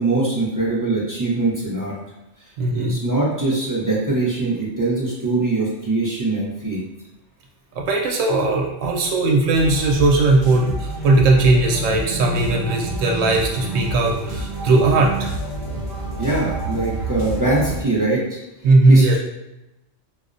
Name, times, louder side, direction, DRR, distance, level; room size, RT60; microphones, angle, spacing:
voice 1, 0.0-1.9 2.7-6.8 16.2-18.4 18.9-19.2, right 2 dB, 25° right, -6 dB, 0.4 m, -22 dB
voice 2, 2.6-3.0 7.8-15.3 18.6-19.2, right 2 dB, 90° right, -1 dB, 0.9 m, -18 dB
sound 1, 9.5-17.8, right 2 dB, 50° left, 1.0 m, -28 dB
4.7 x 2.0 x 2.5 m, 0.95 s
omnidirectional pair, 1.2 m